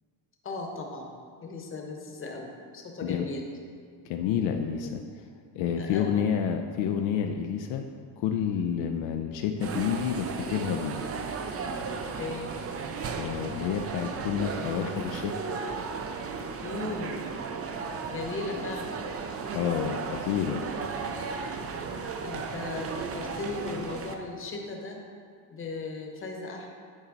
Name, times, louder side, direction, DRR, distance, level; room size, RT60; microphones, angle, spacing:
voice 1, 0.4-1.1 1.4-3.4 4.8-5.0 5.8-6.3 12.1-12.5 16.6-17.2 18.1-19.1 22.2-25.0 25.5-26.7, left 3 dB, 25° left, 1 dB, 1.0 m, -37 dB
voice 2, 4.0-5.0 5.5-7.8 8.2-11.0 13.2-15.3 19.5-20.6, left 8 dB, 70° left, 5 dB, 0.6 m, -29 dB
sound 1, 9.6-24.2, right 5 dB, 30° right, 0.5 m, -35 dB
9.7 x 4.4 x 3.9 m, 2.1 s
cardioid pair, 135°, 47 cm